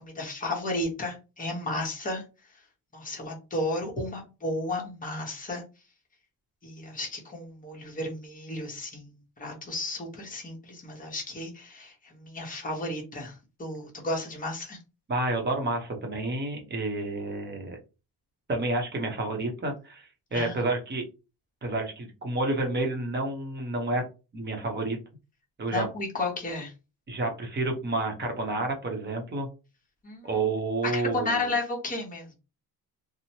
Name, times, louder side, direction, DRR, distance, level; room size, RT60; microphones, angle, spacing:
voice 1, 0.0-2.2 2.9-5.6 6.6-14.8 20.3-20.6 25.7-26.7 30.0-30.4 30.8-32.3, left 2 dB, 20° left, 0 dB, 1.0 m, -33 dB
voice 2, 15.1-17.8 18.5-21.0 21.6-24.0 24.3-25.0 25.6-25.9 27.1-29.5 30.2-31.5, right 2 dB, 25° right, 2 dB, 0.8 m, -29 dB
2.9 x 2.0 x 2.8 m, 0.30 s
cardioid pair, 130°, 39 cm